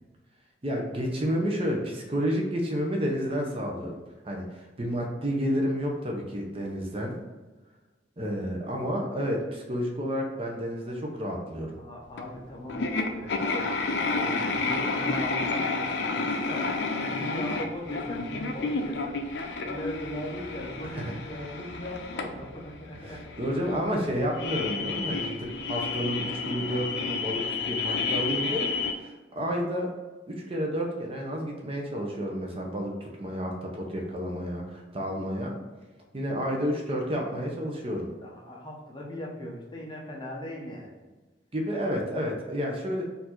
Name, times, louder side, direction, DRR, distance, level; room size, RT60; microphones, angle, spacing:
voice 1, 0.6-3.9 4.2-7.2 8.2-11.8 20.8-21.1 23.0-29.9 30.3-35.6 36.1-38.1 41.5-43.0, equal, 35° right, 0 dB, 0.7 m, -30 dB
voice 2, 11.8-19.2 19.6-23.2 38.2-40.9, left 1 dB, 25° left, -3 dB, 0.8 m, -39 dB
sound 1, 12.2-12.3 12.7-28.9, left 3 dB, 70° left, 0.5 m, -31 dB
4.4 x 2.7 x 4.4 m, 1.2 s
head